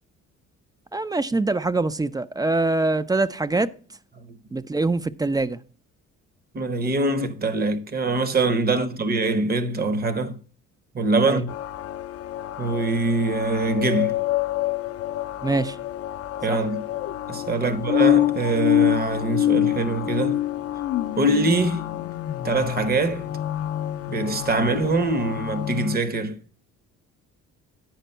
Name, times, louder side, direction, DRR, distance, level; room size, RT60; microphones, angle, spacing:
voice 1, 0.9-3.7 4.5-5.6 8.7-8.9 11.2-11.4 15.4-15.8 16.5-16.6 17.6-17.8, right 2 dB, 15° right, 0.3 m, -24 dB
voice 2, 4.2-4.6 6.5-10.4 10.9-11.5 12.6-14.2 16.4-16.8 17.3-20.4 21.2-22.0 22.4-23.3 24.1-26.4, right 2 dB, 30° right, 0.9 m, -24 dB
sound 1, 11.5-26.0, left 13 dB, 50° left, 0.5 m, -26 dB
9.0 x 5.1 x 5.5 m
cardioid pair, 105°, 30 cm